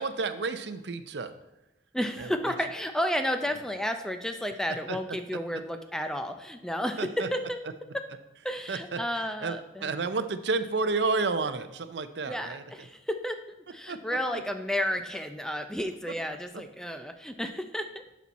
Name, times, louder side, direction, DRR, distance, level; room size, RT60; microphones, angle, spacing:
voice 1, 0.0-1.3 2.2-2.3 4.9-5.0 7.0-7.3 8.7-9.0 9.4-12.6 13.9-14.0, right 4 dB, 65° right, 11 dB, 0.6 m, -30 dB
voice 2, 1.9-7.6 8.4-9.9 12.3-12.6 13.2-13.3 13.7-17.8, equal, 5° left, 7 dB, 0.4 m, -31 dB
11.5 x 4.3 x 4.1 m, 0.97 s
head